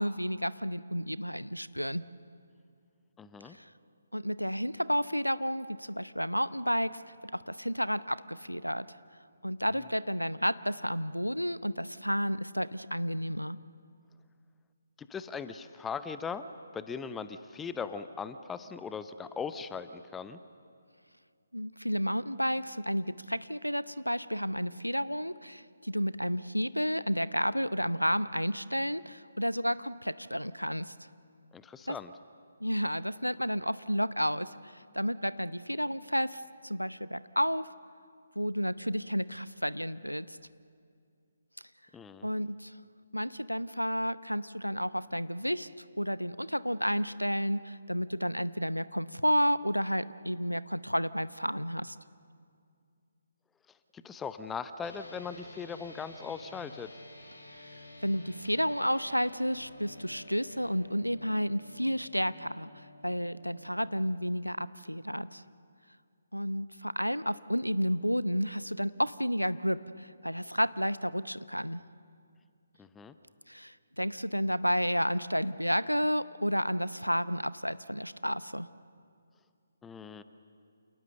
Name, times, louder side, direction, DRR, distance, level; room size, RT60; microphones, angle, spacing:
voice 1, 0.0-2.0 3.4-3.7 4.1-8.9 9.4-13.6 21.5-30.9 31.9-32.0 32.6-37.7 38.4-40.4 42.2-42.7 43.1-52.0 57.6-65.4 66.3-71.8 73.5-78.7, equal, 90° left, 16 dB, 0.8 m, -31 dB
voice 2, 3.2-3.6 15.0-16.4 16.7-20.4 31.5-32.1 41.9-42.3 53.9-56.9 72.8-73.1 79.8-80.2, left 6 dB, 10° left, 12 dB, 0.7 m, -39 dB
sound 1, 54.8-64.3, left 1 dB, 65° left, 4.2 m, -51 dB
29.0 x 28.0 x 6.8 m, 2.3 s
figure-of-eight pair, 140°, 0 cm